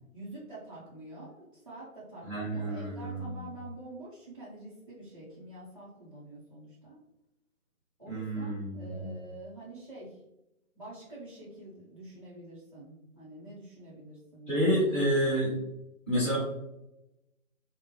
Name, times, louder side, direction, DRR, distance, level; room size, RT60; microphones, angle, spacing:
voice 1, 0.1-7.0 8.0-10.2 10.8-14.8, right 2 dB, 25° right, -11 dB, 0.6 m, -47 dB
voice 2, 2.3-3.2 8.1-9.1 14.5-15.5 16.1-16.4, equal, 10° left, -13 dB, 1.1 m, -29 dB
4.4 x 2.0 x 3.0 m, 0.87 s
hypercardioid pair, 165°, 43 cm